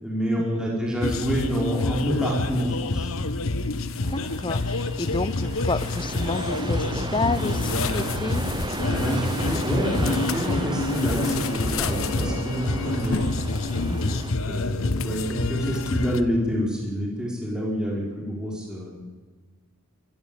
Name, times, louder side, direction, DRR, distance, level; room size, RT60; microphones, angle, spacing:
voice 1, 0.0-3.1 8.9-13.2 14.5-18.9, equal, 5° right, -4 dB, 4.8 m, -27 dB
sound 1, 1.0-16.2, left 3 dB, 70° left, 1.1 m, -27 dB
sound 2, 4.0-14.3, right 2 dB, 20° right, 0.8 m, -34 dB
voice 2, 4.1-8.4 13.9-14.2, left 3 dB, 20° left, 15 dB, 0.8 m, -30 dB
23.0 x 14.5 x 8.8 m, 1.3 s
head